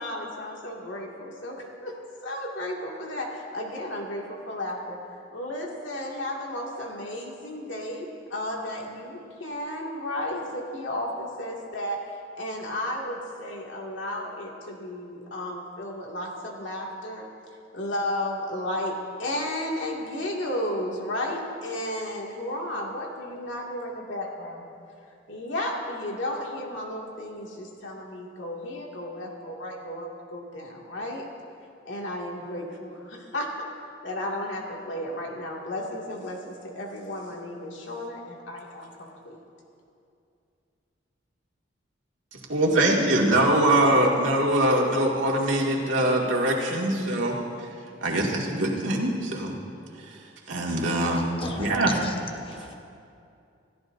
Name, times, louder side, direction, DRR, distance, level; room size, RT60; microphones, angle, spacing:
voice 1, 0.0-1.9 2.2-5.0 5.3-12.0 12.4-17.3 17.7-24.7 25.3-31.3 31.9-39.4, left 1 dB, 75° left, -1 dB, 2.3 m, -33 dB
voice 2, 42.5-47.4 48.0-49.5 50.5-51.2 51.5-52.0, right 1 dB, 80° right, -2 dB, 2.2 m, -23 dB
voice 3, 51.4-51.9 52.4-52.7, left 2 dB, 30° left, 3 dB, 1.1 m, -33 dB
27.5 x 14.5 x 2.7 m, 2.5 s
head